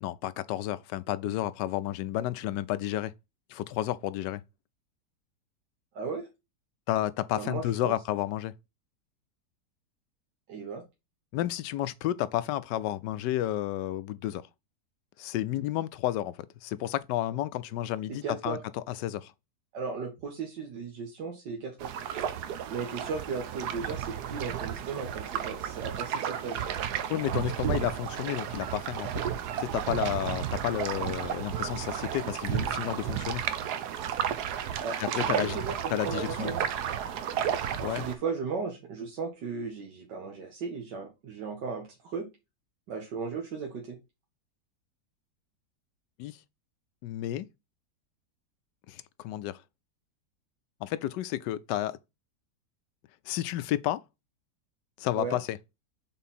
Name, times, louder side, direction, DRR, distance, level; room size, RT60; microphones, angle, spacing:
voice 1, 0.0-3.1 3.5-4.4 6.9-8.5 11.3-14.5 15.2-19.3 27.1-29.1 29.6-33.4 35.0-35.6 35.9-36.5 37.8-38.0 46.2-46.4 47.0-47.4 48.9-49.6 50.8-52.0 53.3-54.0 55.0-55.6, left 13 dB, 85° left, 1.2 m, -31 dB
voice 2, 5.9-6.3 7.3-8.0 10.5-10.8 18.2-18.6 19.7-21.9 22.7-26.8 34.8-36.6 37.8-42.3 42.9-44.0 55.1-55.4, right 5 dB, 90° right, 1.9 m, -36 dB
sound 1, 21.8-38.2, right 9 dB, 70° right, 1.2 m, -33 dB
5.6 x 4.1 x 4.1 m
omnidirectional pair, 1.8 m